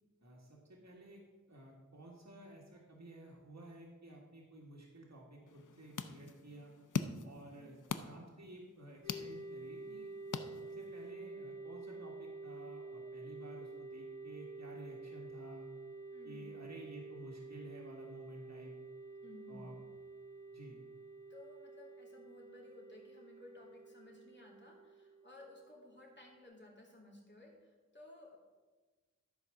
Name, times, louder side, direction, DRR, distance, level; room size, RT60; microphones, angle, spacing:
voice 1, 0.2-1.2 1.5-6.7 7.2-10.1 10.6-15.7 16.2-18.7 19.5-19.7 20.5-20.8, right 1 dB, 60° right, -2 dB, 1.7 m, -53 dB
sound 1, 5.5-11.1, left 6 dB, 80° left, 0.6 m, -44 dB
sound 2, 9.0-26.4, right 3 dB, 80° right, 2.0 m, -50 dB
voice 2, 16.1-16.6 19.2-19.8 21.3-28.4, left 2 dB, 35° left, -2 dB, 2.8 m, -57 dB
12.5 x 4.8 x 6.5 m, 1.3 s
wide cardioid pair, 45°, 31 cm